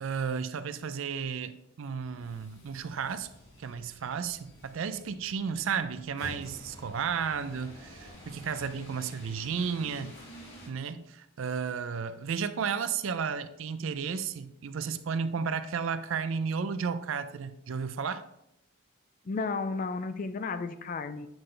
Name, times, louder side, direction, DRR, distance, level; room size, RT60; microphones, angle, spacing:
voice 1, 0.0-3.3 3.6-10.2 10.7-18.2, right 6 dB, 70° right, 0.4 m, -33 dB
sound 1, 2.0-10.7, left 1 dB, 60° left, 2.4 m, -49 dB
voice 2, 19.2-21.3, left 4 dB, 40° left, 0.3 m, -33 dB
8.7 x 3.2 x 3.9 m
head